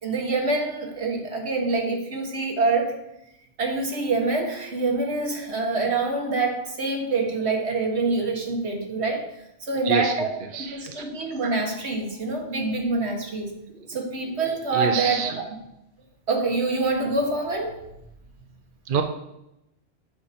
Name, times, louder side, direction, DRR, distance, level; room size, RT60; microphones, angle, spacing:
voice 1, 0.0-2.9 3.6-9.2 9.6-10.3 10.7-13.5 13.9-15.3 16.3-17.8, right 3 dB, 75° right, 2 dB, 1.8 m, -25 dB
voice 2, 10.5-10.9 13.8-13.9 14.7-15.4 18.9-19.0, right 7 dB, 55° right, 6 dB, 0.7 m, -27 dB
8.7 x 6.6 x 4.2 m, 0.85 s
omnidirectional pair, 1.1 m